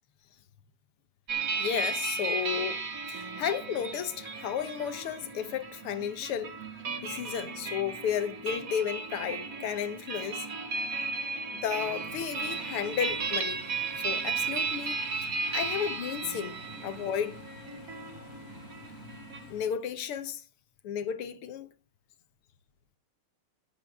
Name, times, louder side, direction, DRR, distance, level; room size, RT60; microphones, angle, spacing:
sound 1, 1.3-19.5, right 4 dB, 45° right, 1.6 m, -35 dB
voice 1, 1.6-2.8 3.1-6.5 7.0-10.5 11.6-13.6 14.0-16.6 16.8-17.4 19.5-20.4 20.8-21.7, left 8 dB, 85° left, 2.1 m, -33 dB
sound 2, 11.8-19.7, left 5 dB, 50° left, 1.5 m, -50 dB
21.0 x 8.2 x 3.6 m
omnidirectional pair, 2.4 m